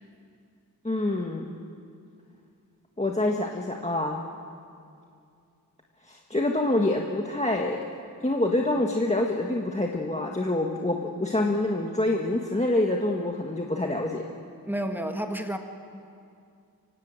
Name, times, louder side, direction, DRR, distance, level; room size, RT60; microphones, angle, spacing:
voice 1, 0.8-1.5 3.0-4.2 6.1-7.8 8.2-14.2, left 1 dB, 20° left, 0 dB, 1.6 m, -26 dB
voice 2, 14.6-15.6, right 1 dB, 5° right, 4 dB, 1.8 m, -30 dB
24.5 x 16.5 x 9.1 m, 2.4 s
wide cardioid pair, 75°, 36 cm